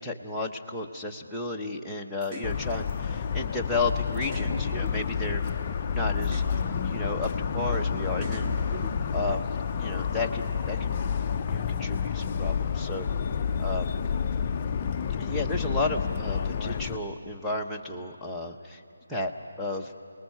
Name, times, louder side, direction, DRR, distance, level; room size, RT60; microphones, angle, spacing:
voice 1, 0.0-6.4 6.8-8.5 9.1-11.0 11.5-13.1 13.6-13.9 15.2-18.8 19.1-19.3 19.6-19.9, left 2 dB, ahead, -4 dB, 0.9 m, -33 dB
sound 1, 2.2-2.5 3.7-3.8 4.2-5.6 6.2-6.5 7.7-7.8 8.2-9.3, right 1 dB, 15° right, 1.7 m, -39 dB
Motor vehicle (road) / Siren, 2.4-17.0, left 7 dB, 30° left, 0.5 m, -29 dB
29.5 x 19.5 x 5.6 m, 2.4 s
figure-of-eight pair, 160°, 0 cm